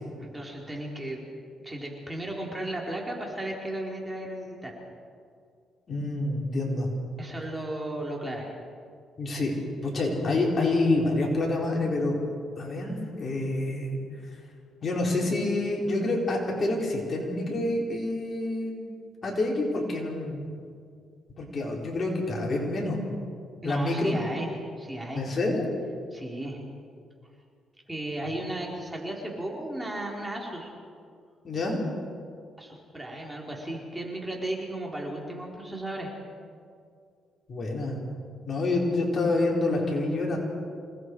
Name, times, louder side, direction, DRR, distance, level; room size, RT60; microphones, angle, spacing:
voice 1, 0.2-1.2 1.6-4.7 7.2-8.6 23.6-24.5 24.8-25.3 26.1-26.6 27.9-30.7 32.6-36.1, right 1 dB, 15° right, -1 dB, 4.3 m, -35 dB
voice 2, 5.9-6.9 9.2-9.5 9.8-12.2 12.6-14.0 14.8-18.8 19.2-20.6 21.4-23.0 23.6-24.1 25.1-25.7 31.4-31.8 37.5-38.0 38.5-40.4, left 2 dB, 40° left, -2 dB, 4.9 m, -27 dB
27.5 x 19.5 x 4.9 m, 2.2 s
cardioid pair, 90°, 0 cm